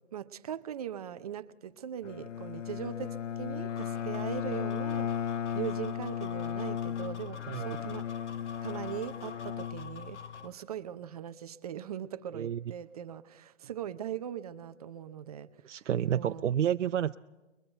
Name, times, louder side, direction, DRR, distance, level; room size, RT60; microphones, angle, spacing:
voice 1, 0.1-8.1 8.6-15.8 16.1-16.5, right 10 dB, 30° right, 12 dB, 0.7 m, -40 dB
Bowed string instrument, 2.0-10.5, left 9 dB, 90° left, 0.7 m, -36 dB
sound 1, 3.7-10.5, left 5 dB, 70° left, 1.4 m, -49 dB
voice 2, 7.5-7.8 12.3-12.6 15.6-17.1, right 10 dB, 75° right, 9 dB, 0.6 m, -30 dB
29.5 x 22.0 x 4.4 m, 1.1 s
hypercardioid pair, 150°, 36 cm